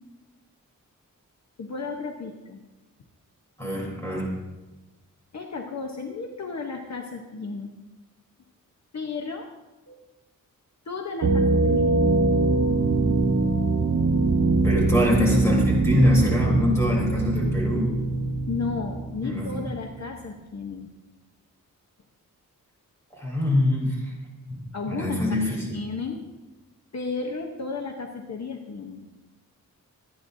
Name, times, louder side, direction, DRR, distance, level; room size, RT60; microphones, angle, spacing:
voice 1, 1.6-2.6 5.3-7.7 8.9-9.5 9.9-10.0 10.9-12.3 18.5-20.9 24.7-25.2 25.7-26.2 26.9-29.0, left 4 dB, 55° left, 2 dB, 1.0 m, -33 dB
voice 2, 3.6-4.3 14.6-17.9 19.2-19.5 23.1-24.1 24.5-25.6, left 1 dB, 10° left, -3 dB, 3.6 m, -24 dB
sound 1, 11.2-19.9, right 3 dB, 85° right, 1.3 m, -23 dB
24.5 x 9.7 x 2.7 m, 1.1 s
wide cardioid pair, 175°, 34 cm